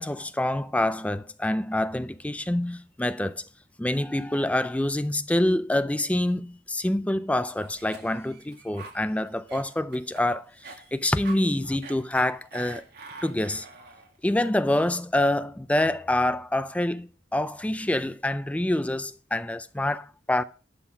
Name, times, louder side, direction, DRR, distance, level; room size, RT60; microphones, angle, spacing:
voice 1, 0.0-3.5 3.8-12.8 13.2-13.7 14.2-20.4, left 1 dB, 5° left, 0.4 m, -26 dB
Cough, 7.6-14.2, right 4 dB, 55° right, 2.1 m, -45 dB
11.0 x 6.1 x 5.9 m
head